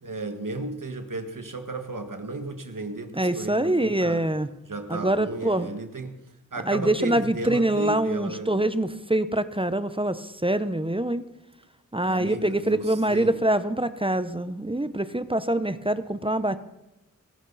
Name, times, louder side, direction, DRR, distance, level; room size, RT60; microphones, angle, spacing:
voice 1, 0.0-4.2 4.7-6.1 6.5-8.6 12.1-13.4, right 3 dB, 80° right, 7 dB, 1.7 m, -34 dB
voice 2, 3.1-4.5 4.9-5.7 6.7-11.2 11.9-16.6, right 1 dB, 15° right, 12 dB, 0.8 m, -25 dB
21.5 x 12.0 x 4.1 m, 0.93 s
wide cardioid pair, 55°, 31 cm